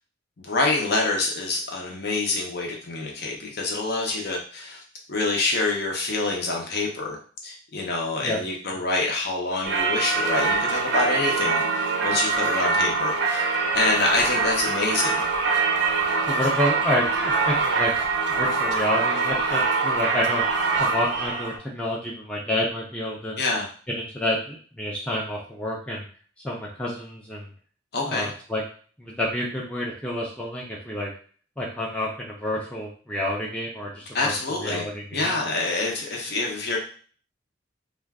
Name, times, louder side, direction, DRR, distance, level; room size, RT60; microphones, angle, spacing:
voice 1, 0.4-4.8 5.1-7.2 7.4-15.2 23.4-23.7 27.9-28.3 34.1-34.9 35.1-36.8, left 2 dB, 55° left, -1 dB, 0.7 m, -26 dB
Singing / Church bell, 9.6-21.6, right 4 dB, 60° right, 0.5 m, -24 dB
voice 2, 16.3-17.9 18.3-20.4 20.8-23.4 23.9-26.1 26.4-27.5 28.1-28.6 29.0-31.1 31.6-35.3, left 1 dB, 5° left, -4 dB, 0.5 m, -29 dB
2.4 x 2.3 x 3.4 m, 0.44 s
head